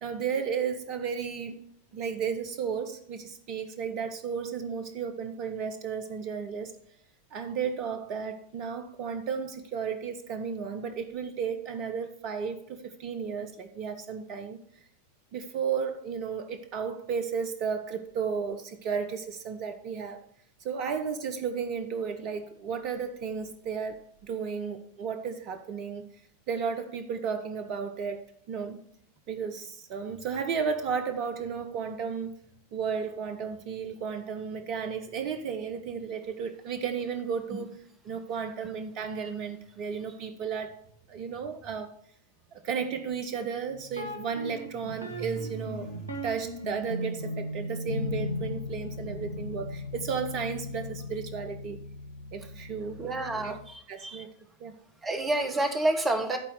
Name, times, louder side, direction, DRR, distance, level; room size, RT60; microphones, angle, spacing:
voice 1, 0.0-1.6 1.9-6.7 7.3-14.6 15.3-20.2 20.6-26.1 26.5-28.8 29.3-32.3 32.7-37.7 38.0-40.8 41.1-41.9 42.5-51.8 52.3-53.0 53.4-53.6 53.9-54.3 54.6-54.8, right 6 dB, 40° right, 8 dB, 0.8 m, -33 dB
sound 1, 43.9-53.7, left 2 dB, 85° right, 1.4 m, -37 dB
voice 2, 53.0-53.6 54.0-54.2 55.0-56.4, right 2 dB, 15° right, 5 dB, 1.5 m, -28 dB
11.5 x 4.3 x 6.4 m, 0.66 s
figure-of-eight pair, 90°, 0 cm